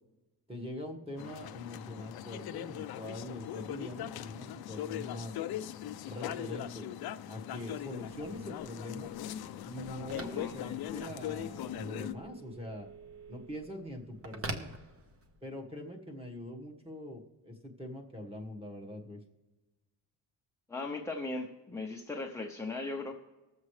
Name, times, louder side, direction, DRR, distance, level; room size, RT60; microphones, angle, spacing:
voice 1, 0.5-5.4 6.1-6.9 7.3-9.1 9.6-12.9 13.3-14.7 15.4-19.2, left 1 dB, 15° right, 1 dB, 1.4 m, -43 dB
sound 1, 1.2-12.1, left 11 dB, 55° left, 0.6 m, -40 dB
Telephone, 8.2-15.5, right 3 dB, 30° right, 1.0 m, -48 dB
voice 2, 10.2-10.5 20.7-23.1, left 2 dB, 5° left, 0 dB, 0.7 m, -38 dB
20.0 x 7.4 x 3.2 m, 1.2 s
cardioid pair, 145°, 44 cm